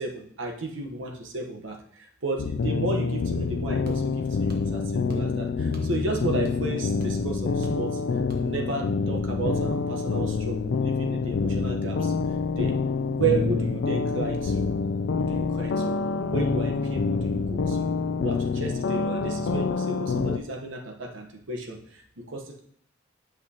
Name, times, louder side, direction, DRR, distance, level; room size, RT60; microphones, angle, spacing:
voice 1, 0.0-8.0 8.4-12.1 12.6-12.8 13.1-14.6 15.1-16.0 16.3-17.9 18.2-22.6, right 3 dB, 85° right, 2 dB, 1.1 m, -33 dB
sound 1, 2.4-20.4, left 4 dB, 75° left, 0.4 m, -27 dB
sound 2, 3.8-4.0 4.5-4.7 5.1-5.3 5.7-6.0 6.2-6.7 7.0-7.1 7.6-7.9 8.3-8.5, right 1 dB, 55° right, 1.1 m, -38 dB
8.5 x 5.9 x 2.8 m, 0.65 s
head